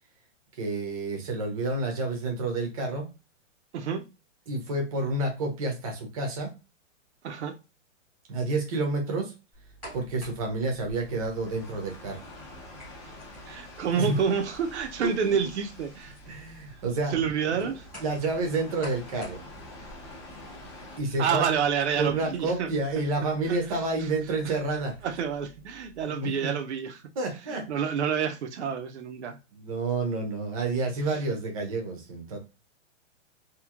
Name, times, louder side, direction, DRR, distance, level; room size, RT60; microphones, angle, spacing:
voice 1, 0.6-3.1 4.5-6.5 8.3-9.3 9.9-12.2 13.9-14.2 15.0-15.4 16.3-17.1 18.0-19.4 21.0-21.4 22.0-24.9 26.1-26.5 27.2-27.8 29.5-32.4, right 2 dB, 30° right, 0.7 m, -29 dB
voice 2, 3.7-4.1 7.2-7.6 13.5-16.1 17.1-17.9 21.2-22.7 23.2-23.6 24.4-24.5 25.0-27.0 27.5-29.4 31.1-31.2, right 7 dB, 65° right, 0.7 m, -28 dB
sound 1, 9.5-26.0, right 2 dB, 5° left, 1.1 m, -50 dB
sound 2, 10.9-21.0, left 2 dB, 25° left, 0.7 m, -47 dB
3.0 x 2.7 x 2.4 m
hypercardioid pair, 170°, 38 cm